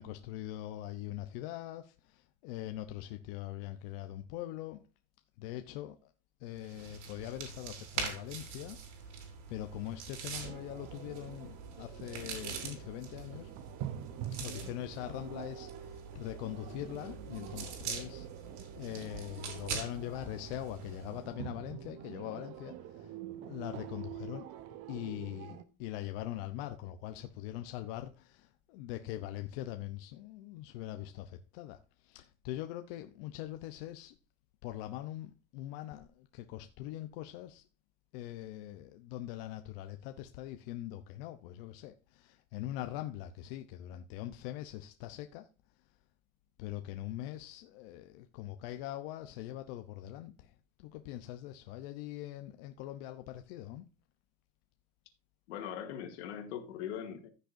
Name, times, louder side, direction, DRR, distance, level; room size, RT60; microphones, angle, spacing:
voice 1, 0.0-4.8 5.4-6.1 6.4-9.2 9.5-13.5 14.3-18.3 18.7-23.1 23.4-24.5 24.9-34.1 34.6-37.6 38.1-45.5 46.6-50.5 50.8-53.8, left 14 dB, 55° left, 0.8 m, -42 dB
sound 1, 6.6-21.2, right 6 dB, 85° right, 4.0 m, -44 dB
sound 2, 10.4-25.6, right 11 dB, 40° right, 0.8 m, -46 dB
voice 2, 55.5-57.3, left 9 dB, 80° left, 2.3 m, -41 dB
15.0 x 6.6 x 2.6 m
supercardioid pair, 160°, 34 cm